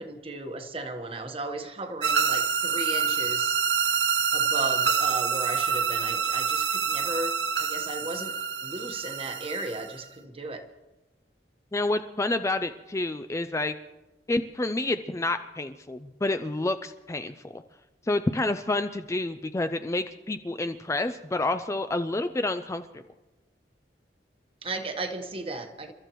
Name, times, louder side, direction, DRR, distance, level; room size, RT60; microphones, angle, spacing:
voice 1, 0.0-3.5 4.3-8.3 8.6-10.6 24.6-25.9, right 2 dB, 30° right, 6 dB, 1.2 m, -35 dB
sound 1, 2.0-10.0, right 6 dB, 75° right, 0.7 m, -27 dB
voice 2, 11.7-13.7 14.3-17.6 18.1-23.0, left 2 dB, 15° left, 9 dB, 0.4 m, -29 dB
29.0 x 13.0 x 3.1 m, 1.1 s
head